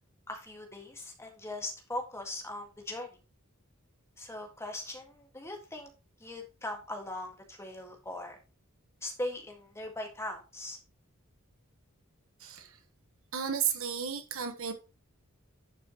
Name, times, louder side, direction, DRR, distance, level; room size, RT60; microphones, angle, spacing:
voice 1, 0.3-3.1 4.2-5.9 6.2-8.4 9.0-10.8, left 1 dB, 15° left, 1.8 m, -40 dB
voice 2, 12.4-12.8 13.3-14.7, right 8 dB, 65° right, 1.3 m, -33 dB
11.0 x 6.6 x 3.0 m
head